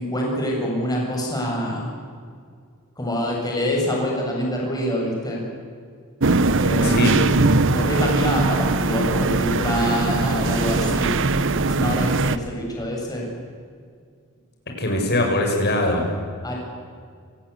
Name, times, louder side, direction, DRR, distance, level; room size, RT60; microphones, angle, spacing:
voice 1, 0.0-1.9 3.0-5.4 6.6-7.1 7.7-11.1 11.6-13.3 16.4-16.5, equal, 20° left, -2 dB, 7.7 m, -25 dB
sound 1, 6.2-12.4, right 3 dB, 60° right, 1.1 m, -20 dB
voice 2, 6.8-7.2 14.8-16.0, left 1 dB, 50° left, 2 dB, 6.5 m, -21 dB
30.0 x 19.0 x 8.5 m, 2.1 s
head